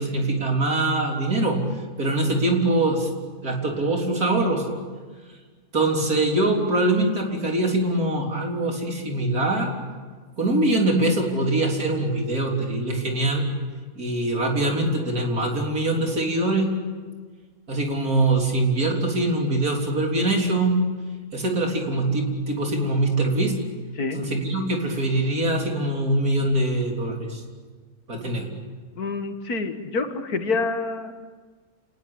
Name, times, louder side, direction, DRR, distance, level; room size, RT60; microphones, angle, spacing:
voice 1, 0.0-1.6 2.0-3.1 3.4-4.7 5.7-9.7 10.4-13.5 14.0-16.7 17.7-20.8 21.3-23.5 24.1-27.4 28.1-28.5, right 2 dB, 75° right, 1 dB, 4.2 m, -23 dB
voice 2, 29.0-31.2, left 3 dB, 80° left, 7 dB, 2.3 m, -27 dB
30.0 x 19.5 x 8.8 m, 1.5 s
omnidirectional pair, 1.6 m